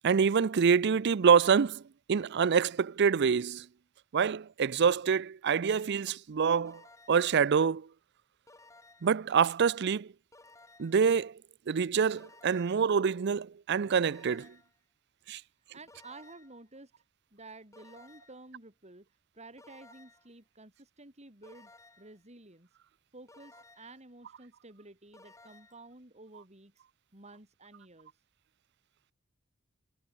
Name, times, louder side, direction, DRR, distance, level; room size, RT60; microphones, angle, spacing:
voice 1, 0.0-1.8 2.1-3.7 4.1-6.8 7.1-7.9 9.0-10.1 10.8-11.3 11.7-14.5 15.3-15.4, right 6 dB, 55° right, 0.5 m, -26 dB
sound 1, 6.6-7.4 8.5-9.2 10.3-11.1 12.2-12.9 14.0-14.8 15.9-16.6 17.7-18.5 19.6-20.3 21.4-22.2 23.3-24.0 25.1-25.9, left 2 dB, 15° left, 6.7 m, -57 dB
voice 2, 15.3-17.0 17.3-22.7 23.1-26.8 27.1-28.2, right 2 dB, 35° right, 5.3 m, -52 dB
head